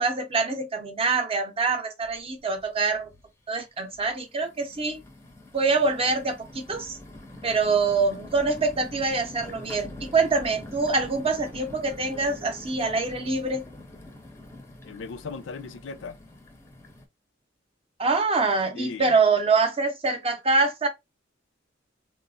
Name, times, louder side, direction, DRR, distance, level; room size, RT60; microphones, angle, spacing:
voice 1, 0.0-3.1 3.5-5.0 5.5-7.0 7.4-13.6 18.0-20.9, right 4 dB, 30° right, 0.5 m, -25 dB
sound 1, 2.0-2.1 2.6-3.2 3.9-17.0, left 1 dB, 15° left, 0.5 m, -44 dB
voice 2, 14.8-16.2 18.7-19.2, left 4 dB, 70° left, 0.4 m, -38 dB
3.1 x 2.0 x 2.4 m
head